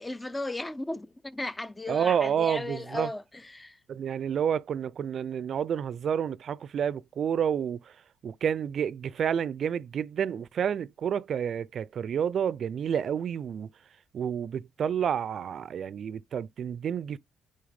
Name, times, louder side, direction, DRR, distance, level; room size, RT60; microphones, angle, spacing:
voice 1, 0.0-3.8, left 2 dB, 15° left, 0.4 m, -36 dB
voice 2, 1.9-3.1 3.9-8.0 8.2-13.7 14.1-17.2, right 8 dB, 55° right, 0.4 m, -29 dB
9.5 x 3.4 x 3.4 m
cardioid pair, 100°, 0 cm